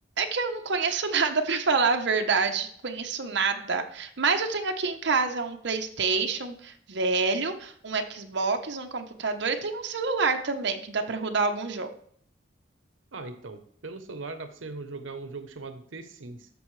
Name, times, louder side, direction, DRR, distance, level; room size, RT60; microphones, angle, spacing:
voice 1, 0.2-11.9, right 4 dB, 65° right, 5 dB, 0.8 m, -27 dB
voice 2, 13.1-16.5, right 3 dB, 90° right, 9 dB, 0.8 m, -39 dB
13.0 x 5.4 x 3.2 m, 0.63 s
head